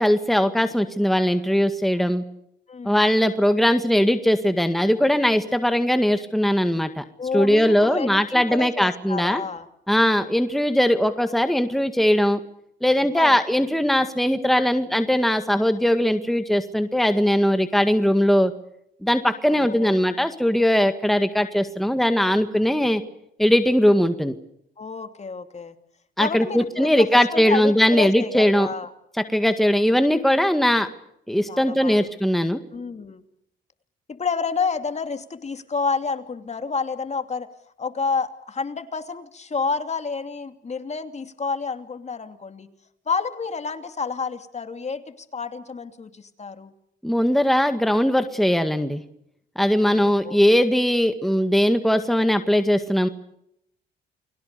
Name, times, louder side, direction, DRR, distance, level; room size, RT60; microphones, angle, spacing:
voice 1, 0.0-2.2 2.8-7.0 7.3-9.4 9.9-12.4 12.8-18.5 19.0-23.0 23.4-24.3 26.2-28.7 29.3-30.9 31.3-32.6 47.0-49.0 49.6-53.1, equal, ahead, 8 dB, 1.9 m, -20 dB
voice 2, 2.7-3.1 7.2-9.7 13.1-13.4 19.5-20.0 24.8-25.8 26.2-28.9 31.5-32.1 32.7-33.2 34.1-37.5 37.8-42.7 43.1-46.7 49.9-50.4, left 4 dB, 35° left, 8 dB, 2.7 m, -29 dB
29.5 x 22.0 x 6.9 m, 0.76 s
cardioid pair, 90°, 20 cm